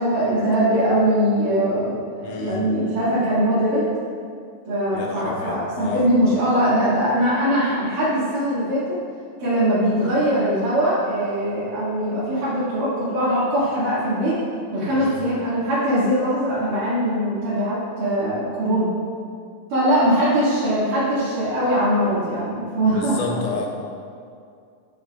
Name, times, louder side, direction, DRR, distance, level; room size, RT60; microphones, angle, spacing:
voice 1, 0.0-3.8 4.7-8.8 9.4-14.4 14.7-18.9 19.7-23.2, equal, 80° right, -13 dB, 4.0 m, -21 dB
voice 2, 2.2-2.7 4.9-6.1 14.9-15.3 22.9-23.7, left 4 dB, 80° left, 1 dB, 2.5 m, -30 dB
16.5 x 6.1 x 2.6 m, 2.3 s
omnidirectional pair, 3.6 m